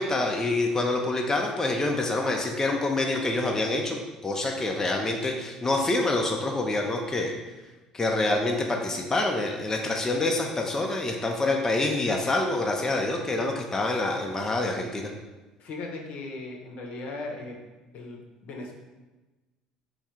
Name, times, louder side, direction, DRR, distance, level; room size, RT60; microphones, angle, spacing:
voice 1, 0.0-7.3 7.9-15.1, left 2 dB, 20° left, 1 dB, 0.5 m, -26 dB
voice 2, 15.6-17.6 17.9-18.7, left 2 dB, 60° left, 1 dB, 0.7 m, -37 dB
3.5 x 2.4 x 4.3 m, 1.2 s
hypercardioid pair, 60°, 3 cm